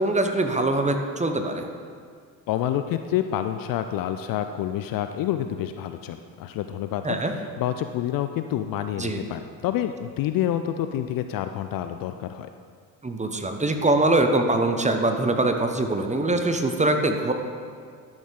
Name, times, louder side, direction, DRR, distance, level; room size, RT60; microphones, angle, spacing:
voice 1, 0.0-1.7 7.0-7.3 9.0-9.2 13.0-17.3, right 2 dB, 15° right, 6 dB, 0.8 m, -23 dB
voice 2, 2.5-12.5, left 11 dB, 45° left, 9 dB, 0.5 m, -28 dB
12.0 x 6.2 x 3.7 m, 2.1 s
hypercardioid pair, 55°, 48 cm